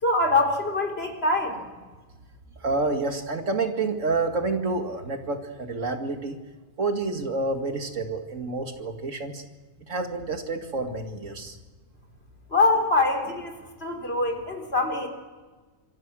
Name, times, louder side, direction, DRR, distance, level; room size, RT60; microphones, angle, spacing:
voice 1, 0.0-1.6 12.5-13.5 13.8-15.1, left 2 dB, 40° left, 4 dB, 4.0 m, -24 dB
voice 2, 2.6-6.4 6.8-9.4 9.9-11.6, right 3 dB, 55° right, 5 dB, 2.5 m, -28 dB
26.5 x 23.5 x 6.2 m, 1.3 s
omnidirectional pair, 1.5 m